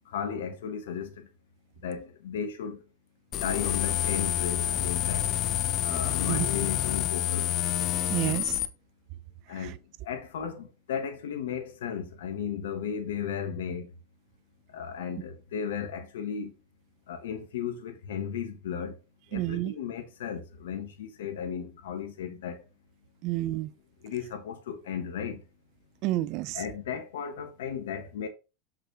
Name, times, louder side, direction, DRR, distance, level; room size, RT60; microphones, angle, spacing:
voice 1, 0.1-1.3 1.8-2.8 3.3-5.3 5.8-7.5 9.5-9.8 10.0-13.9 14.7-16.5 17.1-19.0 19.3-22.6 24.0-25.4 26.5-28.3, left 7 dB, 75° left, 1.4 m, -35 dB
sound 1, 3.3-8.6, left 12 dB, 45° left, 0.6 m, -28 dB
voice 2, 8.1-8.6 9.5-9.7 19.3-19.7 23.2-23.7 26.0-26.6, right 16 dB, 55° right, 0.5 m, -30 dB
6.4 x 5.9 x 2.9 m
hypercardioid pair, 90°, 0 cm